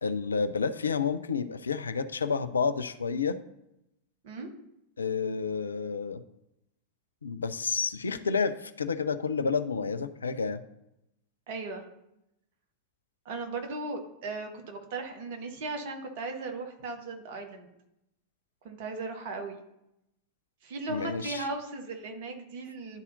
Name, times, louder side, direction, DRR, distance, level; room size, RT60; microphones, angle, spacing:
voice 1, 0.0-3.4 5.0-6.2 7.2-10.6 20.9-21.5, left 5 dB, 75° left, 12 dB, 0.4 m, -30 dB
voice 2, 11.5-11.8 13.2-17.7 18.6-19.6 20.6-23.0, right 3 dB, 50° right, 4 dB, 1.2 m, -37 dB
11.5 x 4.1 x 2.7 m, 0.85 s
figure-of-eight pair, 90°, 0 cm